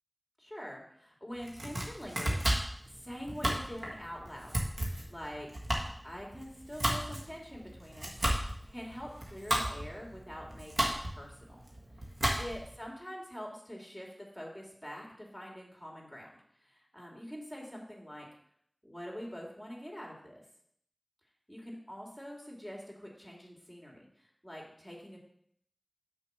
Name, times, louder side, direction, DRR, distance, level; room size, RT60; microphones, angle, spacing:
voice 1, 0.4-2.4 2.9-4.6 5.0-5.6 6.0-11.6 12.0-18.3 18.8-20.4 21.5-25.2, equal, 5° left, -2 dB, 2.6 m, -45 dB
Domestic sounds home sounds, 1.4-12.8, right 1 dB, 80° right, 1.6 m, -34 dB
6.3 x 4.7 x 6.7 m, 0.68 s
wide cardioid pair, 40°, 0 cm